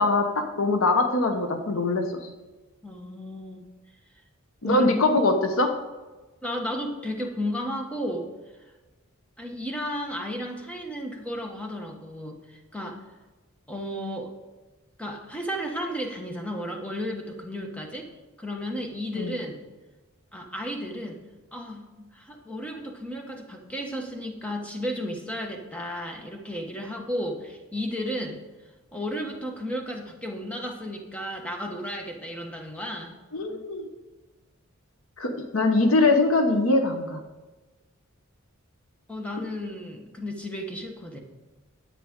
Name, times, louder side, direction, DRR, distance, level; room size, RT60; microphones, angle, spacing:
voice 1, 0.0-2.2 4.6-5.7 19.1-19.4 33.3-33.9 35.2-37.2, left 2 dB, 75° left, 5 dB, 0.9 m, -22 dB
voice 2, 2.8-3.6 4.6-4.8 6.4-8.3 9.4-13.0 13.7-14.3 15.0-18.1 18.4-19.6 20.3-21.2 21.5-28.4 28.9-33.2 39.1-41.2, equal, 5° left, 2 dB, 1.1 m, -33 dB
10.0 x 8.5 x 3.6 m, 1.2 s
head